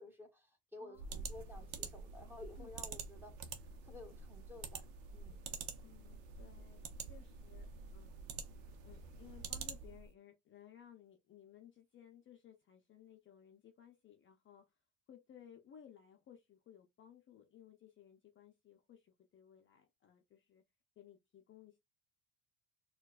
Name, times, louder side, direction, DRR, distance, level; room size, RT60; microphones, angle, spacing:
voice 1, 0.0-3.3 3.8-4.8 5.1-5.4, left 2 dB, 5° right, 1.0 m, -53 dB
sound 1, 1.0-10.1, right 5 dB, 90° right, 0.8 m, -47 dB
voice 2, 5.8-6.8 7.1-7.7 7.9-8.2 8.8-14.6 15.1-20.6 21.0-21.8, left 9 dB, 35° left, 0.5 m, -60 dB
4.4 x 2.3 x 2.4 m
supercardioid pair, 100°, 37 cm